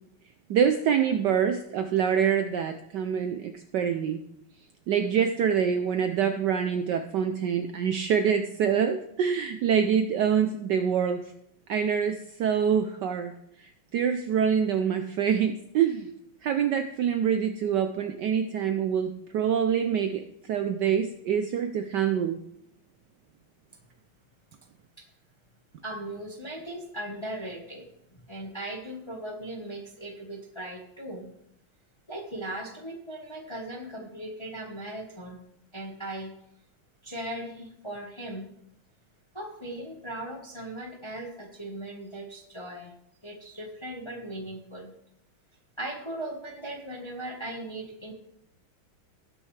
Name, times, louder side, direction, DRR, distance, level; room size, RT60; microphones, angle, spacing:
voice 1, 0.5-4.2 4.9-11.3 11.7-13.3 13.6-16.1 16.4-22.4, right 8 dB, 75° right, 7 dB, 1.0 m, -25 dB
voice 2, 25.8-31.3 32.1-35.4 35.7-36.3 37.0-38.5 39.3-42.9 43.2-44.9 45.8-48.1, right 1 dB, 20° left, 1 dB, 0.8 m, -38 dB
18.0 x 6.3 x 3.2 m, 0.75 s
omnidirectional pair, 2.4 m